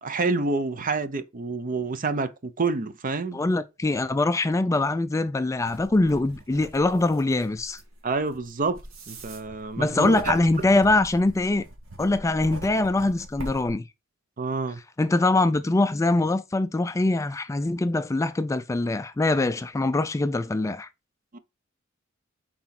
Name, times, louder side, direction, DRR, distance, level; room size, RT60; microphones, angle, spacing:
voice 1, 0.0-3.4 8.0-8.8 9.1-10.4 14.4-14.8 21.3-21.4, right 3 dB, 40° right, 0.7 m, -28 dB
voice 2, 3.3-7.8 9.8-11.6 12.0-13.8 15.0-20.9, left 2 dB, 15° left, 0.3 m, -23 dB
sound 1, 5.7-13.7, right 1 dB, 80° right, 1.7 m, -42 dB
6.0 x 4.2 x 4.2 m
head